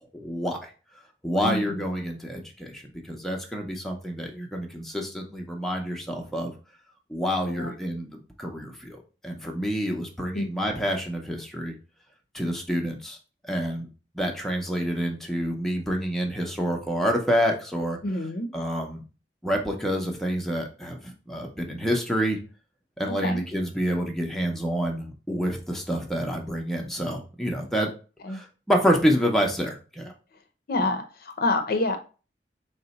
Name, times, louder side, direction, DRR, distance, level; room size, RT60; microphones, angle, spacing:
voice 1, 0.1-0.7 1.2-6.5 7.1-9.0 9.2-11.7 12.3-13.2 13.5-13.9 14.1-18.0 18.5-19.0 19.4-22.4 23.0-27.9 28.3-30.1, equal, ahead, 1 dB, 0.5 m, -28 dB
voice 2, 1.4-1.8 7.4-7.7 10.3-10.4 18.0-18.5 23.1-23.4 28.2-28.4 30.7-32.0, left 2 dB, 55° left, 6 dB, 0.6 m, -27 dB
3.9 x 2.1 x 3.9 m, 0.35 s
head